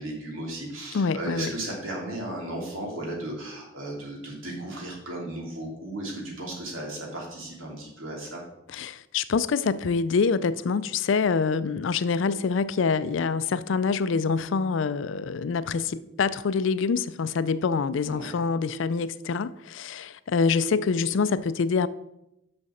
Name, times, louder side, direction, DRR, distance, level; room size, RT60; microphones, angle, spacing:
voice 1, 0.0-8.4 18.0-18.4, right 1 dB, 80° right, 3.1 m, -35 dB
voice 2, 0.9-1.5 8.7-21.9, left 5 dB, 70° left, 0.4 m, -26 dB
6.9 x 6.6 x 6.4 m
head